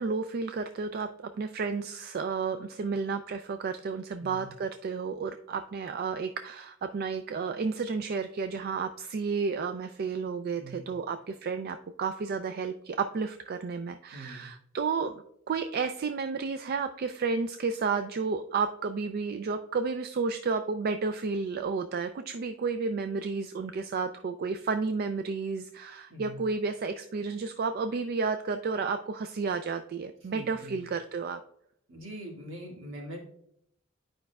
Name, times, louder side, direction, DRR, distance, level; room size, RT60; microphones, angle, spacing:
voice 1, 0.0-31.4, right 4 dB, 50° right, 9 dB, 0.3 m, -32 dB
voice 2, 4.2-4.5 10.6-10.9 14.1-14.5 26.1-26.4 30.2-30.8 31.9-33.2, right 1 dB, 70° right, -1 dB, 1.9 m, -43 dB
9.8 x 5.2 x 2.3 m, 0.72 s
head